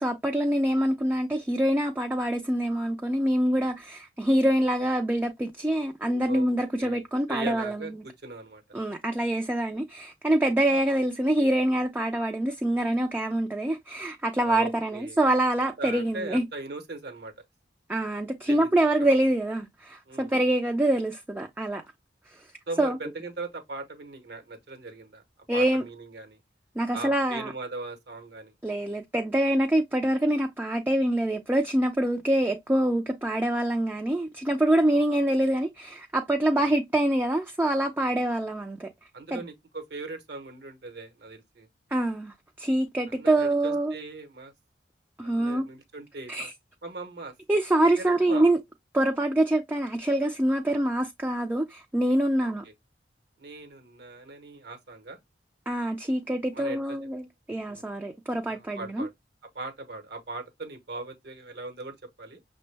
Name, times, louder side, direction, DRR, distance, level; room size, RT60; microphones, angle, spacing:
voice 1, 0.0-7.8 8.7-16.4 17.9-21.8 22.8-23.0 25.5-25.8 26.8-27.5 28.6-38.9 39.3-39.4 41.9-43.9 45.2-45.7 46.3-46.5 47.5-48.6 48.9-52.6 55.7-59.1, right 1 dB, 10° right, 0.3 m, -25 dB
voice 2, 6.2-8.6 10.4-10.6 14.4-15.2 15.8-17.3 18.5-18.9 20.1-20.3 22.7-25.2 25.5-26.4 26.9-28.5 34.9-35.0 36.5-36.7 39.1-41.7 43.1-44.5 45.2-46.5 46.8-47.3 48.0-48.4 52.4-52.7 53.4-55.2 56.5-57.0 57.7-57.9 58.5-59.1 59.5-62.4, right 3 dB, 60° right, 0.9 m, -39 dB
5.9 x 2.1 x 3.2 m
head